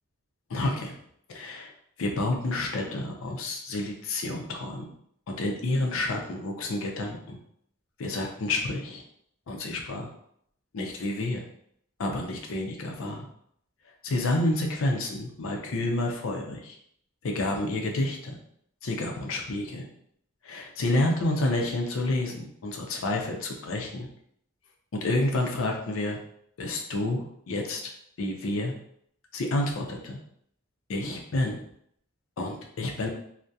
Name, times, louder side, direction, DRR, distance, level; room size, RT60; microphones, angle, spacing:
voice 1, 0.5-0.9 1.3-1.7 2.0-4.9 5.3-7.4 8.0-9.0 9.5-10.1 10.7-11.5 12.0-13.3 14.0-16.8 17.2-18.4 18.8-19.9 20.4-24.1 25.0-26.2 26.6-27.9 28.2-28.7 29.3-30.2 30.9-31.6 32.4-33.1, left 2 dB, 70° left, 1 dB, 0.5 m, -29 dB
2.6 x 2.1 x 2.3 m, 0.68 s
head